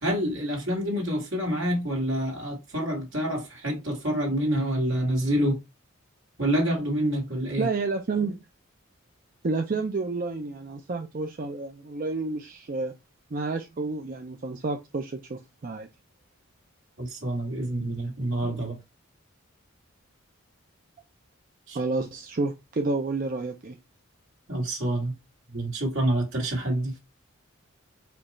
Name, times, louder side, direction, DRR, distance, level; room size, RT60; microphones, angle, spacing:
voice 1, 0.0-5.6 6.4-7.7 14.0-14.1 17.0-18.8 21.7-21.8 24.5-25.1 25.5-26.9, right 1 dB, 60° right, 2.1 m, -27 dB
voice 2, 7.6-8.4 9.4-12.9 13.3-15.9 21.7-23.7, right 3 dB, 40° right, 0.5 m, -30 dB
5.1 x 2.4 x 4.2 m
head